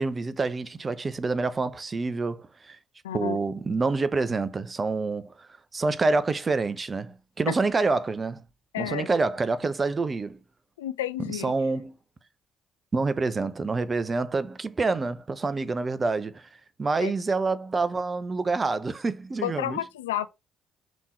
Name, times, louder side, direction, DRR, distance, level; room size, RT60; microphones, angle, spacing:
voice 1, 0.0-2.8 3.1-8.4 8.8-10.4 11.3-12.0 12.9-16.5 16.8-19.8, right 3 dB, 30° right, 0.8 m, -27 dB
voice 2, 3.0-3.4 7.5-7.6 8.7-9.1 10.8-11.5 17.0-17.1 19.4-20.3, left 12 dB, 80° left, 0.4 m, -31 dB
6.1 x 3.7 x 4.3 m
hypercardioid pair, 50°, 0 cm